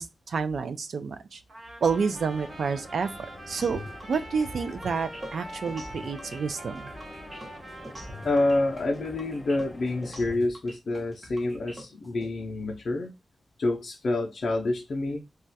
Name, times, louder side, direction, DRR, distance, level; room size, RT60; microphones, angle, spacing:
voice 1, 0.0-1.4 1.8-3.1 3.5-3.8 4.1-6.9, right 5 dB, 75° right, 0.4 m, -29 dB
Trumpet, 1.5-9.0, right 1 dB, 55° right, 0.8 m, -44 dB
sound 1, 1.8-10.4, left 1 dB, 20° left, 0.6 m, -46 dB
sound 2, 3.6-12.3, equal, 20° right, 0.8 m, -44 dB
voice 2, 8.2-13.1 13.6-15.2, left 2 dB, 60° left, 0.4 m, -27 dB
2.3 x 2.1 x 3.9 m
wide cardioid pair, 110°, 0 cm